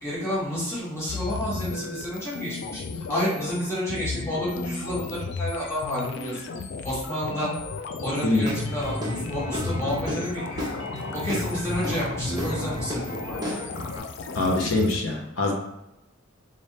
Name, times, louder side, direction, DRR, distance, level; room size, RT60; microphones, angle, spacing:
voice 1, 0.0-6.4 6.8-7.6 8.0-10.7 11.1-13.4, equal, 15° left, -8 dB, 1.4 m, -30 dB
sound 1, 1.1-15.0, left 4 dB, 55° left, 0.4 m, -34 dB
Guitar / Drum, 8.4-14.0, equal, 20° right, 0.7 m, -33 dB
voice 2, 14.3-15.5, left 2 dB, 80° left, -1 dB, 0.8 m, -24 dB
3.5 x 2.6 x 4.1 m, 0.92 s
head